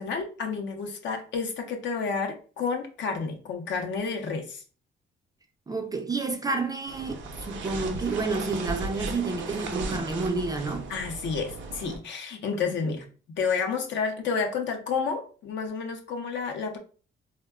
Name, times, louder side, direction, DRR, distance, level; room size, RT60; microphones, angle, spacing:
voice 1, 0.0-4.6 10.9-13.0 13.4-16.8, left 5 dB, 65° left, 0.6 m, -30 dB
voice 2, 5.7-10.9 12.6-12.9, right 3 dB, 20° right, 0.4 m, -30 dB
sound 1, 6.9-12.0, right 4 dB, 70° right, 0.5 m, -36 dB
3.5 x 2.1 x 2.2 m
cardioid pair, 90°, 20 cm